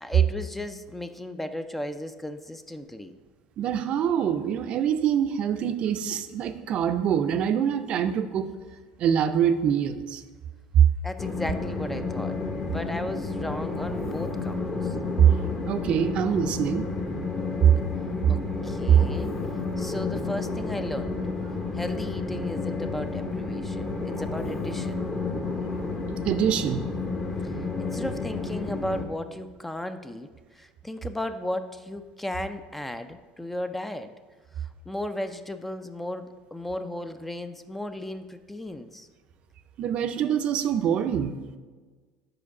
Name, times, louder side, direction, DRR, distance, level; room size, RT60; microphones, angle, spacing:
voice 1, 0.0-3.2 11.0-12.4 12.7-15.0 18.3-19.5 19.8-21.2 21.7-25.0 27.8-34.1 34.6-39.1, left 1 dB, 10° left, 9 dB, 0.4 m, -35 dB
voice 2, 3.6-8.5 9.0-10.2 15.6-16.9 26.2-26.9 39.8-41.3, right 8 dB, 50° right, 9 dB, 0.5 m, -25 dB
Train, 11.2-29.0, left 3 dB, 25° left, 0.9 m, -31 dB
4.9 x 4.5 x 5.9 m, 1.4 s
supercardioid pair, 100°, 2 cm